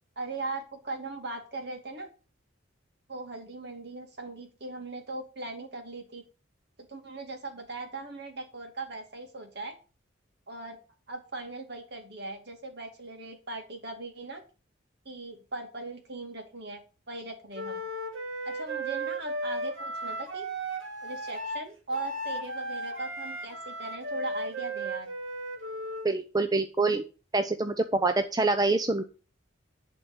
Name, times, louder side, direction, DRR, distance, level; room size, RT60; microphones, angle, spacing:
voice 1, 0.2-2.1 3.1-6.2 6.9-9.7 10.5-10.8 11.1-14.4 15.0-16.8 17.1-17.8 18.4-20.4 21.0-25.1, right 2 dB, 55° right, 4 dB, 2.6 m, -39 dB
Wind instrument woodwind instrument, 17.5-26.1, right 1 dB, 85° right, 2.6 m, -35 dB
voice 2, 26.0-27.0 27.3-29.0, right 3 dB, 20° right, 8 dB, 0.6 m, -26 dB
11.0 x 4.4 x 7.9 m, 0.35 s
head